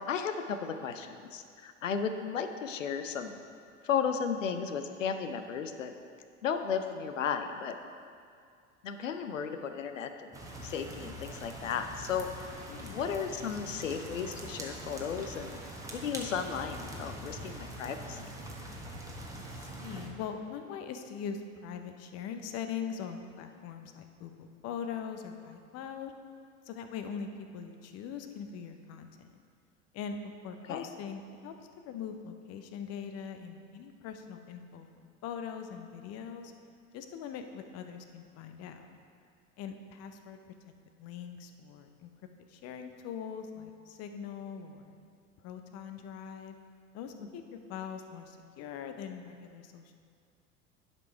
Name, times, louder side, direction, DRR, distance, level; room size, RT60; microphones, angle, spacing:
voice 1, 0.0-3.4 3.8-5.9 6.4-7.8 8.8-10.3 10.6-12.5 12.9-15.6 15.9-18.2 30.7-30.8, left 7 dB, 75° left, 8 dB, 0.6 m, -34 dB
sound 1, 10.3-20.1, right 1 dB, 10° right, 1.2 m, -43 dB
voice 2, 12.7-13.1 19.3-26.1 26.7-29.3 29.9-31.5 31.9-36.5 36.9-39.0 39.6-40.4 41.0-42.1 42.5-45.0 45.4-46.5 46.9-49.9, left 7 dB, 40° left, 7 dB, 0.8 m, -42 dB
10.5 x 5.3 x 4.5 m, 2.3 s
figure-of-eight pair, 75°, 39 cm